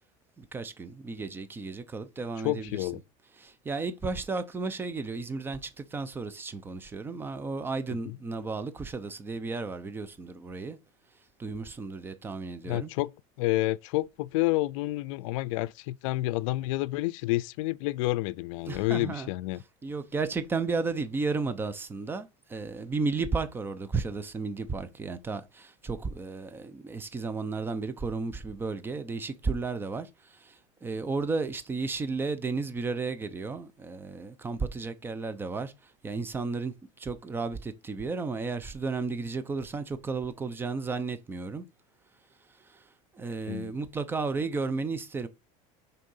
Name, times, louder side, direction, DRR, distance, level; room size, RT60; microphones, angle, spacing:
voice 1, 0.4-2.9 3.4-10.8 11.4-12.9 18.7-19.3 19.8-41.6 42.6-42.9 43.1-45.3, right 4 dB, 15° right, 0.8 m, -33 dB
voice 2, 2.4-3.0 7.9-8.2 12.7-13.1 13.4-19.6 43.5-43.7, left 19 dB, 75° left, 0.5 m, -29 dB
6.5 x 4.2 x 5.6 m
cardioid pair, 160°, 17 cm